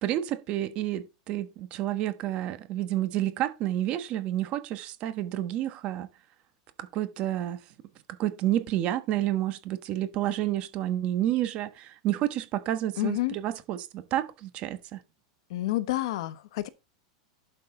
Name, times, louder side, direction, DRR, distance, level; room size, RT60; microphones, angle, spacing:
voice 1, 0.0-6.1 6.8-7.6 8.1-15.0, right 13 dB, 35° right, 1.1 m, -30 dB
voice 2, 13.0-13.4 15.5-16.7, left 16 dB, 65° left, 1.0 m, -29 dB
11.5 x 5.9 x 3.7 m
supercardioid pair, 160°, 3 cm